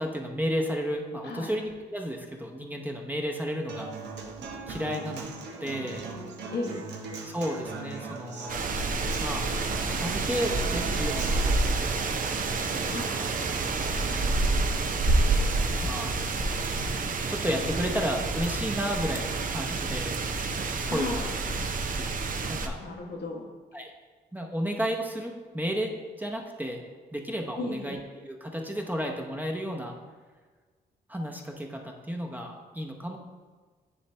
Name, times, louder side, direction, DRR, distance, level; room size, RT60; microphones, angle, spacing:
voice 1, 0.0-3.9 4.7-5.3 5.6-6.1 7.2-8.6 9.2-9.5 9.9-12.1 12.6-13.3 14.1-14.6 15.8-16.1 17.3-20.1 20.9-21.1 22.0-22.2 22.5-22.8 23.7-23.9 24.3-25.9 26.2-26.8 27.1-28.0 28.2-30.0 31.1-33.2, equal, 10° right, 1 dB, 0.8 m, -32 dB
Human voice / Acoustic guitar, 3.7-11.7, right 3 dB, 85° right, 0.9 m, -39 dB
voice 2, 6.5-6.9 12.8-13.1 20.9-21.3 22.8-23.5 27.6-28.0, left 2 dB, 75° left, 0 dB, 1.2 m, -34 dB
sound 1, 8.5-22.7, right 3 dB, 50° right, 0.6 m, -28 dB
Wind, 13.6-21.5, left 1 dB, 30° left, 0.9 m, -42 dB
9.7 x 3.2 x 3.3 m, 1.4 s
cardioid pair, 80°, 17 cm